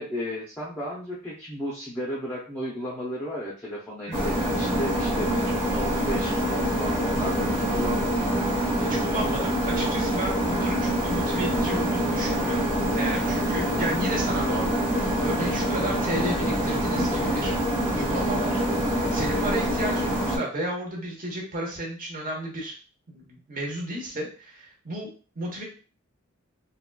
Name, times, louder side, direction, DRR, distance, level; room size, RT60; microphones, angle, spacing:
voice 1, 0.0-8.5 13.7-14.1, equal, 10° left, -6 dB, 0.6 m, -34 dB
sound 1, 4.1-20.4, equal, 15° right, 1.3 m, -25 dB
voice 2, 8.9-12.7 13.0-17.6 17.9-18.6 19.1-22.8 23.1-25.1 25.4-25.6, right 1 dB, 40° right, -1 dB, 1.0 m, -33 dB
3.7 x 2.3 x 2.2 m, 0.38 s
head